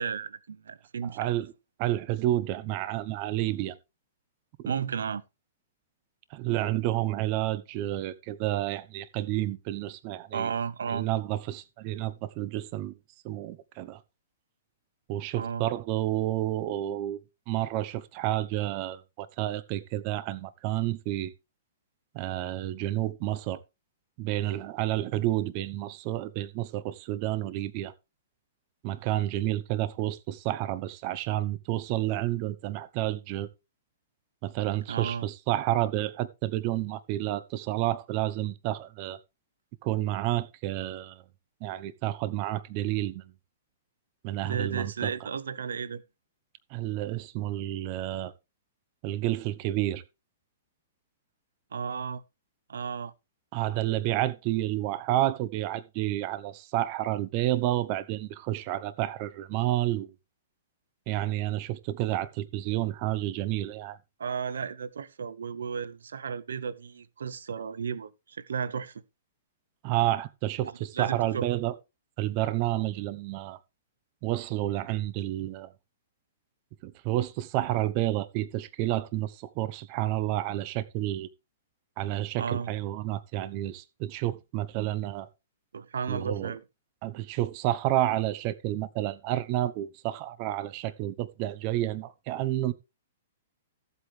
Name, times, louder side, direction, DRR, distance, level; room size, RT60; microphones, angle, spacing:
voice 1, 0.0-1.3 4.7-5.2 10.3-11.1 15.3-15.7 34.9-35.3 44.4-46.0 51.7-52.2 52.7-53.1 64.2-69.0 70.6-71.4 82.4-82.7 85.7-86.6, right 6 dB, 85° right, 0.8 m, -33 dB
voice 2, 1.0-1.5 1.8-3.7 4.6-4.7 6.3-10.5 10.9-12.9 13.2-14.0 15.1-17.2 17.5-21.3 22.1-23.6 24.2-27.9 28.8-33.5 34.4-39.2 39.8-41.2 41.6-43.3 44.2-45.1 46.7-48.3 49.0-50.0 53.5-60.1 61.1-64.0 69.8-71.7 72.2-73.6 74.2-75.7 76.8-81.3 82.0-85.3 86.1-86.5 87.0-92.7, right 14 dB, 40° right, 0.9 m, -30 dB
14.0 x 8.2 x 3.3 m
hypercardioid pair, 140°, 0 cm